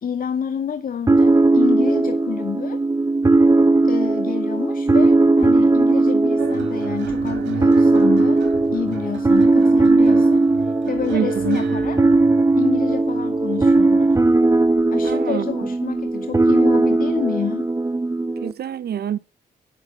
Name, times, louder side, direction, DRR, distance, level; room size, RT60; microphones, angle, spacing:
voice 1, 0.0-2.8 3.8-8.4 8.7-10.4 10.9-12.0 12.6-14.2 14.9-17.7, left 7 dB, 50° left, 0.8 m, -28 dB
sound 1, 1.1-18.5, right 2 dB, 15° right, 0.7 m, -18 dB
sound 2, 6.4-15.1 16.1-16.3, right 6 dB, 80° right, 2.4 m, -36 dB
voice 2, 11.1-11.6 15.0-15.7 18.4-19.2, right 9 dB, 60° right, 0.7 m, -26 dB
8.4 x 5.9 x 6.7 m
cardioid pair, 65°, 19 cm